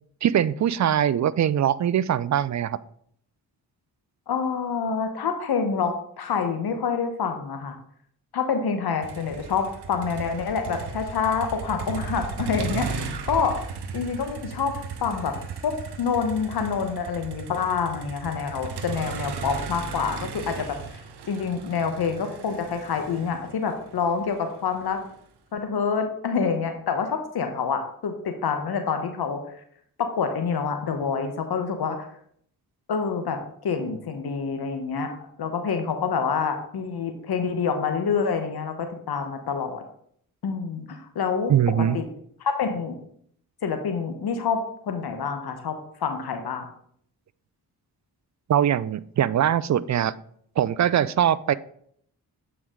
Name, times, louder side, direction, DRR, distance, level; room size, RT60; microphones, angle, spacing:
voice 1, 0.2-2.8 41.5-42.0 48.5-50.1 50.6-51.5, right 10 dB, 45° right, 19 dB, 0.4 m, -22 dB
voice 2, 4.3-7.8 8.3-13.5 13.9-14.7 15.0-15.3 15.6-20.8 21.3-25.0 25.5-29.4 30.0-32.1 32.9-35.1 35.4-39.8 40.4-41.5 41.9-42.0 42.4-43.0 43.6-46.7, left 6 dB, 65° left, 6 dB, 1.1 m, -27 dB
Motor vehicle (road), 9.0-25.1, right 5 dB, 70° right, 1.0 m, -36 dB
8.5 x 4.7 x 3.7 m, 0.66 s
supercardioid pair, 45°, 41 cm